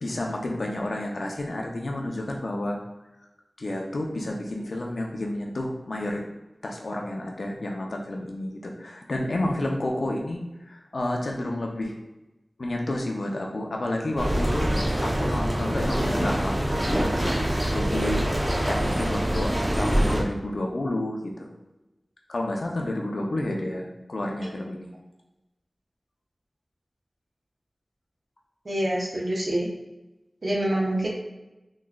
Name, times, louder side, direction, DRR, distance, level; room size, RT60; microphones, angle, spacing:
voice 1, 0.0-2.8 3.6-6.2 6.6-12.0 12.6-14.7 15.0-17.1 17.7-18.3 18.6-21.5 22.3-24.9, left 1 dB, 80° left, 0 dB, 0.5 m, -30 dB
sound 1, 14.2-20.2, right 1 dB, 30° right, 0.7 m, -25 dB
voice 2, 28.6-29.7 30.4-31.1, right 1 dB, 65° right, -3 dB, 0.9 m, -26 dB
3.8 x 3.1 x 2.3 m, 1.0 s
wide cardioid pair, 60°, 0 cm